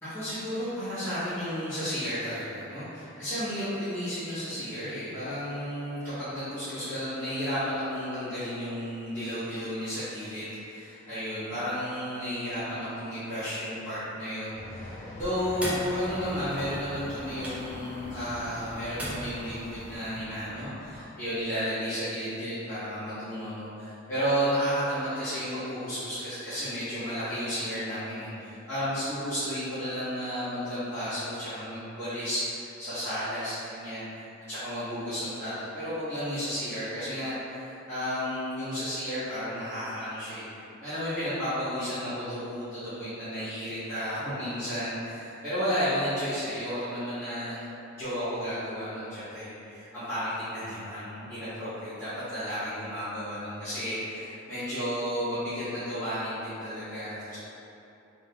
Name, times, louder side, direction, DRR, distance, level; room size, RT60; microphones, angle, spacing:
voice 1, 0.0-40.4 40.8-47.7 48.0-57.4, equal, 15° left, -19 dB, 1.2 m, -33 dB
sound 1, 14.5-21.1, left 1 dB, 35° left, 0.6 m, -43 dB
sound 2, 15.2-20.0, equal, 5° right, 0.5 m, -40 dB
3.6 x 3.6 x 2.2 m, 2.9 s
head